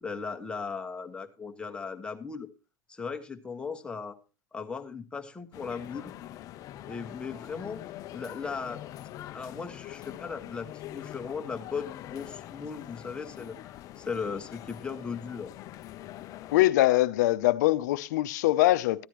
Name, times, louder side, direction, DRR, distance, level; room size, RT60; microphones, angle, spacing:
voice 1, 0.0-2.5 2.9-4.2 4.5-6.1 6.9-7.8 8.1-8.8 9.3-15.5, left 5 dB, 10° left, 1.1 m, -37 dB
sound 1, 5.5-16.6, left 13 dB, 35° left, 0.5 m, -44 dB
voice 2, 16.5-19.0, left 16 dB, 75° left, 0.6 m, -23 dB
13.5 x 9.9 x 3.1 m
supercardioid pair, 130°, 10 cm